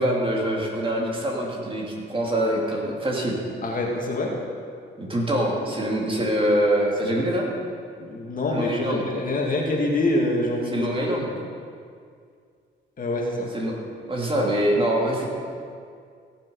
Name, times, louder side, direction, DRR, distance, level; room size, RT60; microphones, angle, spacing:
voice 1, 0.0-3.4 5.0-7.5 8.5-9.0 10.7-11.3 13.5-13.8 14.1-15.3, right 1 dB, 25° right, -2 dB, 2.7 m, -24 dB
voice 2, 3.6-4.4 7.0-7.3 8.0-10.9 13.0-13.5, left 1 dB, 45° left, -1 dB, 2.3 m, -25 dB
16.0 x 7.4 x 5.6 m, 2.2 s
cardioid pair, 90°, 20 cm